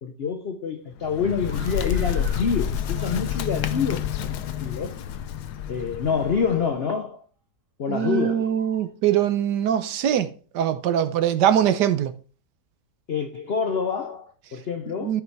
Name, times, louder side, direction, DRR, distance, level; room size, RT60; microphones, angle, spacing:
voice 1, 0.0-4.9 5.7-7.2 7.8-8.5 13.1-15.2, left 6 dB, 50° left, 0.8 m, -27 dB
Bird, 0.9-6.7, left 9 dB, 75° left, 1.3 m, -29 dB
Screaming, 1.4-2.5 2.9-3.6 4.3-4.9 5.4-5.6 6.1-7.1 7.9-8.9, right 3 dB, 35° right, 1.6 m, -47 dB
voice 2, 7.9-12.1 15.0-15.2, right 10 dB, 85° right, 1.5 m, -22 dB
13.5 x 5.4 x 4.6 m
omnidirectional pair, 1.8 m